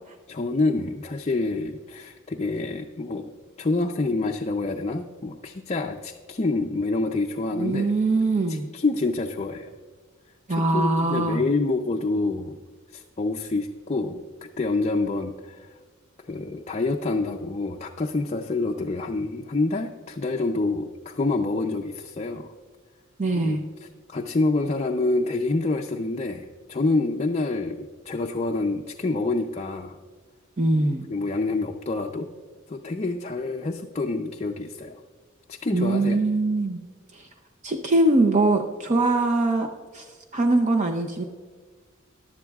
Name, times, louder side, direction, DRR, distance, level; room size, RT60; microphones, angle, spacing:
voice 1, 0.3-3.2 3.6-7.9 8.5-9.7 10.5-12.6 12.9-15.7 16.2-22.5 23.4-30.0 31.1-32.3 32.7-35.0 35.5-36.2, left 3 dB, 30° left, 3 dB, 0.5 m, -27 dB
voice 2, 7.6-8.7 10.5-11.4 23.2-23.6 30.6-31.1 35.7-36.8 37.1-37.3 37.6-39.7 39.9-41.2, right 2 dB, 35° right, 4 dB, 0.6 m, -22 dB
15.0 x 11.0 x 2.3 m, 1.5 s
head